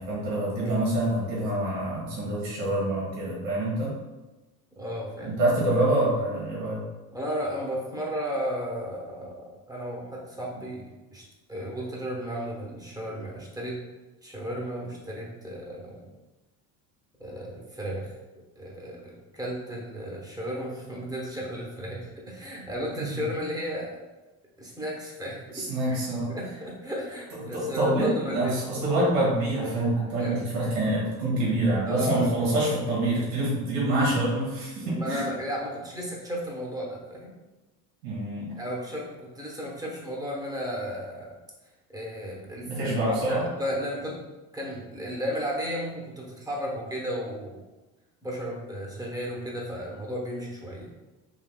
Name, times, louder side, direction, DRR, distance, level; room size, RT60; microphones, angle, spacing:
voice 1, 0.0-3.9 5.2-6.8 23.0-23.1 25.5-26.3 27.5-35.2 38.0-38.5 42.6-43.4, right 1 dB, 80° right, -5 dB, 1.5 m, -26 dB
voice 2, 4.8-5.4 7.1-10.9 11.1-11.2 11.5-13.8 14.2-16.1 17.2-18.1 18.6-24.0 24.6-26.0 26.3-28.6 30.2-30.4 31.9-32.3 34.8-37.3 38.6-41.3 41.9-44.2 44.5-47.6 48.2-51.0, equal, 10° right, -3 dB, 1.0 m, -34 dB
3.7 x 2.8 x 2.2 m, 1.1 s
supercardioid pair, 90°, 44 cm